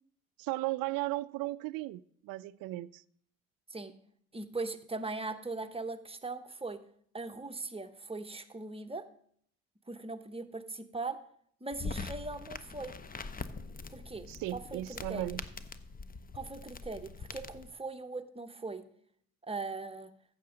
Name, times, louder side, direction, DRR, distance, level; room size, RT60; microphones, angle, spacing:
voice 1, 0.4-3.0 14.3-15.4, right 18 dB, 60° right, 0.5 m, -36 dB
voice 2, 4.3-6.8 7.1-9.0 9.9-11.2 11.6-12.9 13.9-15.4 16.3-18.8 19.4-20.1, right 3 dB, 15° right, 1.1 m, -40 dB
sound 1, 11.7-17.7, left 4 dB, 20° left, 0.8 m, -43 dB
14.5 x 7.1 x 3.8 m
hypercardioid pair, 50°, 40 cm